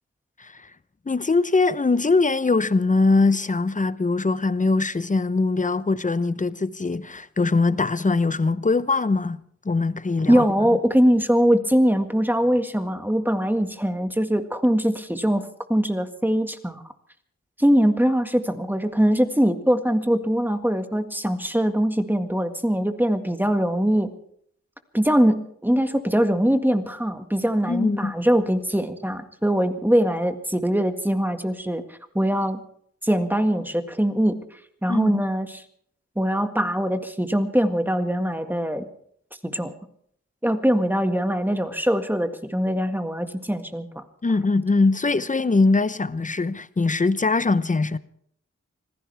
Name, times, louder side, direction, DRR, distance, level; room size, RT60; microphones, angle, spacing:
voice 1, 1.1-9.4 9.6-10.4 27.7-28.1 34.9-35.1 44.2-48.0, left 3 dB, 25° left, 0.8 m, -22 dB
voice 2, 10.3-15.4 15.7-16.8 17.6-24.1 24.9-32.6 33.0-34.4 34.8-35.6 36.2-38.9 39.4-39.7 40.4-44.0, equal, 5° right, 1.8 m, -22 dB
25.5 x 16.0 x 3.5 m
cardioid pair, 55°, 30 cm